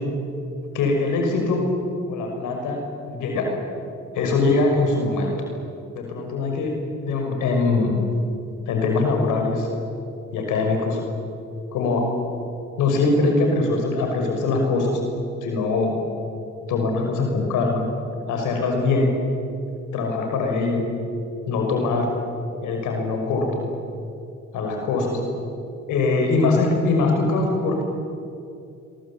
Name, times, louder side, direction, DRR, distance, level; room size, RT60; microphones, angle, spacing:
voice 1, 0.7-1.6 2.1-2.8 3.1-3.5 4.1-5.3 5.9-6.7 7.0-8.0 8.7-9.7 10.3-11.0 11.7-12.0 12.8-15.0 15.4-15.9 16.7-17.8 18.3-19.1 19.9-20.8 21.5-22.1 22.6-23.6 24.5-25.2 25.9-27.8, left 3 dB, 90° left, 2 dB, 6.0 m, -22 dB
28.5 x 23.0 x 8.6 m, 2.5 s
cardioid pair, 90°, 30 cm